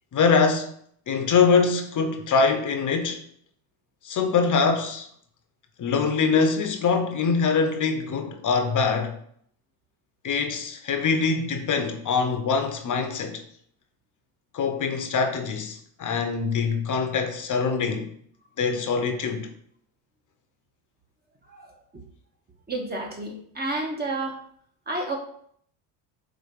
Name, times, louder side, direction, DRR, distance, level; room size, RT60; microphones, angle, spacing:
voice 1, 0.1-0.7 1.1-3.2 4.0-5.1 5.8-9.2 10.2-13.4 14.5-18.1 18.6-19.5, left 5 dB, 40° left, 1.0 m, -23 dB
voice 2, 22.7-24.4 24.9-25.2, right 2 dB, 20° right, 1.4 m, -30 dB
5.0 x 3.7 x 5.4 m
supercardioid pair, 100°, 47 cm